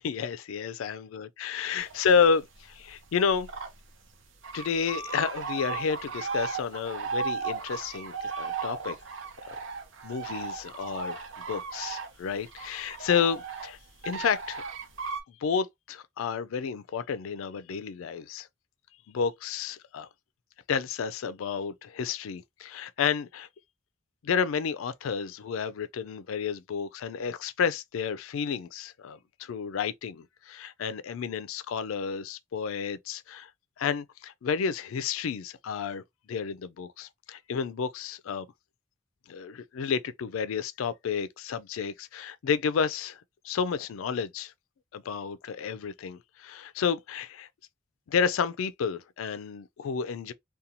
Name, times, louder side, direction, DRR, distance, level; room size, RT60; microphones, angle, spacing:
voice 1, 0.0-3.5 4.5-9.0 9.4-9.6 10.0-13.8 14.0-14.6 15.3-18.5 19.1-20.1 20.7-23.5 24.2-33.5 33.8-36.0 36.3-38.5 39.3-43.2 43.4-44.5 44.9-47.5 48.1-50.3, left 6 dB, 85° left, 0.4 m, -31 dB
sound 1, 1.9-2.3 2.7-3.8 4.0-4.1 4.4-15.2, right 5 dB, 70° right, 0.6 m, -36 dB
2.8 x 2.3 x 2.5 m
head